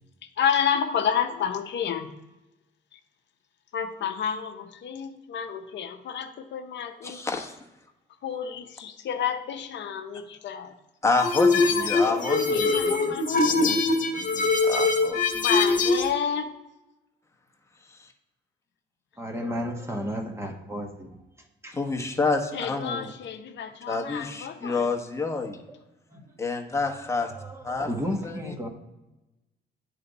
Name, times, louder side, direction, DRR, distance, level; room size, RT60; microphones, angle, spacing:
voice 1, 0.2-2.2 2.9-3.0 3.7-7.2 8.2-10.8 11.8-13.6 15.3-16.6 22.5-24.9, left 8 dB, 65° left, 7 dB, 0.6 m, -30 dB
voice 2, 7.0-7.6 11.0-13.1 13.4-15.2 18.0-18.1 21.7-23.1 23.9-25.6 26.4-27.3 27.6-28.5, left 3 dB, 15° left, 2 dB, 1.0 m, -29 dB
sound 1, 11.2-16.1, left 3 dB, 40° left, 1.3 m, -22 dB
voice 3, 19.2-21.2 21.6-21.8 26.1-26.2 27.3-28.7, equal, 15° right, 2 dB, 1.2 m, -33 dB
10.0 x 3.3 x 4.0 m, 1.0 s
cardioid pair, 90°, 20 cm